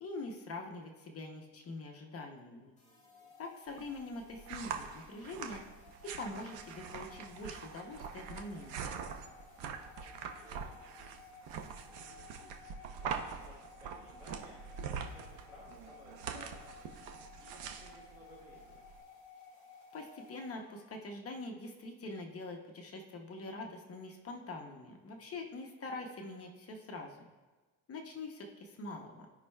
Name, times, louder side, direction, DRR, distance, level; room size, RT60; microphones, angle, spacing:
voice 1, 0.0-2.7 3.4-5.6 6.0-8.9 19.9-27.2 27.9-29.3, left 2 dB, 35° left, 2 dB, 0.8 m, -44 dB
sound 1, 2.8-21.0, left 4 dB, 15° left, 2.0 m, -57 dB
voice 2, 2.8-3.3 10.0-11.3 11.9-14.6 15.0-16.9 17.4-18.8 25.1-25.5, equal, 15° right, -9 dB, 1.8 m, -59 dB
sound 2, 3.7-19.0, right 6 dB, 90° right, 0.9 m, -44 dB
16.0 x 5.4 x 2.3 m, 1.3 s
cardioid pair, 145°, 42 cm